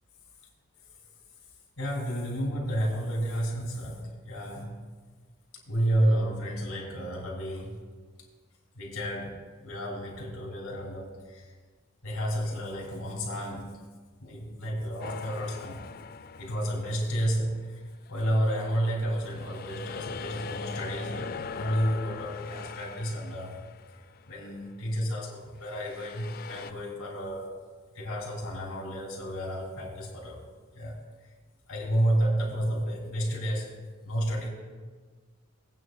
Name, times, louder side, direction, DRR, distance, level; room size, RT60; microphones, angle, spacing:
voice 1, 1.8-4.8 5.7-7.8 8.7-11.5 12.0-13.8 14.2-15.9 16.4-17.8 18.1-23.6 24.3-27.6 27.9-30.4 30.7-31.0 31.7-33.7 34.0-34.5, equal, 80° left, -2 dB, 3.2 m, -31 dB
sound 1, 15.0-17.5 18.1-24.5 25.6-26.7, left 5 dB, 45° left, 0.3 m, -41 dB
20.0 x 9.0 x 2.4 m, 1.4 s
head